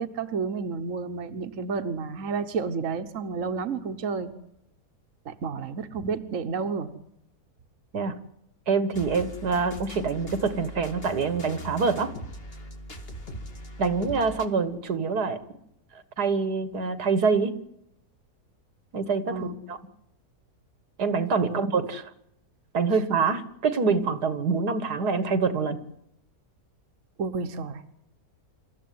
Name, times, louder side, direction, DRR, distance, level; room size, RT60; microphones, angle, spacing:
voice 1, 0.0-4.3 5.2-6.9 19.3-19.5 21.4-21.6 27.2-27.8, right 5 dB, 55° right, 8 dB, 1.6 m, -31 dB
voice 2, 8.7-12.1 13.8-15.4 16.2-17.5 18.9-19.8 21.0-22.1 22.7-25.8, right 4 dB, 80° right, 13 dB, 2.2 m, -25 dB
sound 1, 8.9-14.5, right 1 dB, 35° left, 2.4 m, -41 dB
27.0 x 14.5 x 9.5 m, 0.79 s
omnidirectional pair, 1.7 m